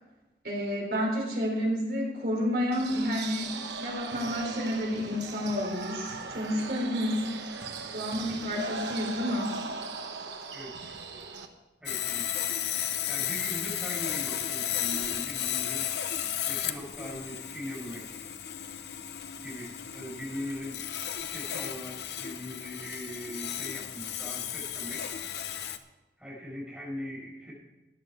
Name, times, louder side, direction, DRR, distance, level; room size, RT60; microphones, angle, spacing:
voice 1, 0.4-3.5 3.8-7.2 7.9-9.5, equal, 55° right, -1 dB, 4.0 m, -30 dB
sound 1, 2.7-11.5, right 4 dB, 85° right, 1.3 m, -39 dB
voice 2, 10.5-10.9 11.8-12.3 13.1-15.9 16.4-18.3 19.4-20.8 21.1-25.1 26.2-27.5, equal, 5° right, -5 dB, 5.0 m, -40 dB
Sawing, 11.9-25.8, left 10 dB, 70° left, 0.8 m, -34 dB
14.5 x 10.5 x 4.8 m, 1.1 s
head